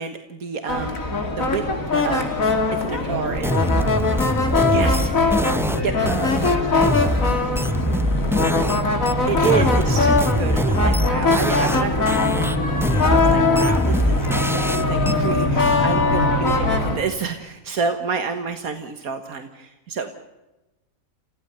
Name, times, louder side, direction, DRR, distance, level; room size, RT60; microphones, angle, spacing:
voice 1, 0.0-2.4 2.7-3.5 4.6-5.1 5.8-5.9 9.3-12.0 13.1-20.1, right 6 dB, 80° right, 7 dB, 1.9 m, -28 dB
sound 1, 0.7-17.0, left 3 dB, 65° left, 3.3 m, -21 dB
voice 2, 3.1-4.5 4.8-5.2 5.7-8.0 8.2-8.9 9.6-9.7 16.2-16.3, right 1 dB, 40° right, 2 dB, 5.9 m, -32 dB
sound 2, 3.4-8.8 9.1-11.8 12.1-15.1, equal, ahead, 0.7 m, -23 dB
30.0 x 15.5 x 6.9 m, 1.0 s
omnidirectional pair, 1.5 m